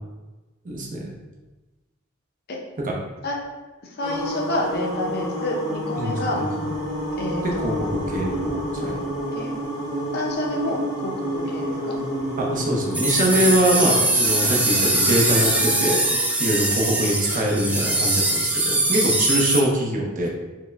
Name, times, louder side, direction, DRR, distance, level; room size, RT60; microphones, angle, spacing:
voice 1, 0.6-1.1 2.8-2.9 6.0-6.7 7.4-9.0 12.4-16.0 16.4-20.3, right 1 dB, 40° right, -1 dB, 0.7 m, -23 dB
voice 2, 4.0-6.4 7.2-8.0 8.8-9.5 10.1-12.0, left 1 dB, 50° left, 0 dB, 0.6 m, -29 dB
sound 1, 4.0-16.1, equal, 30° left, 1.2 m, -30 dB
sound 2, 12.9-19.6, right 1 dB, 5° right, 0.3 m, -22 dB
4.3 x 2.1 x 3.3 m, 1.2 s
head